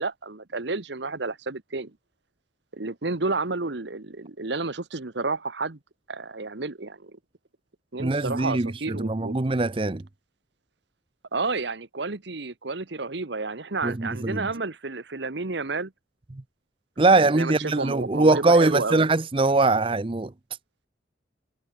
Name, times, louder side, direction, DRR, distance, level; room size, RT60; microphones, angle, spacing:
voice 1, 0.0-1.9 2.7-5.8 6.1-7.1 7.9-9.3 11.3-15.9 17.1-19.0, right 3 dB, 65° right, 1.2 m, -31 dB
voice 2, 8.0-10.0 13.8-14.5 17.0-20.3, right 2 dB, 30° right, 0.6 m, -22 dB
head